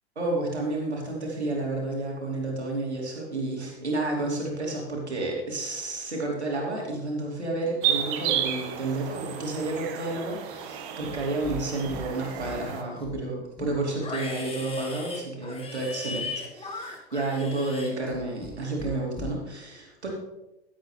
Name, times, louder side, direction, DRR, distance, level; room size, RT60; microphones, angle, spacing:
voice 1, 0.2-20.1, right 2 dB, 90° right, -1 dB, 2.9 m, -31 dB
sound 1, 7.8-12.8, right 9 dB, 50° right, 1.4 m, -32 dB
Livestock farm animals working animals, 11.0-11.6 11.9-12.6 12.9-18.5 18.8-19.3, left 3 dB, 15° left, 1.7 m, -38 dB
14.5 x 7.9 x 3.3 m, 0.94 s
hypercardioid pair, 90°, 32 cm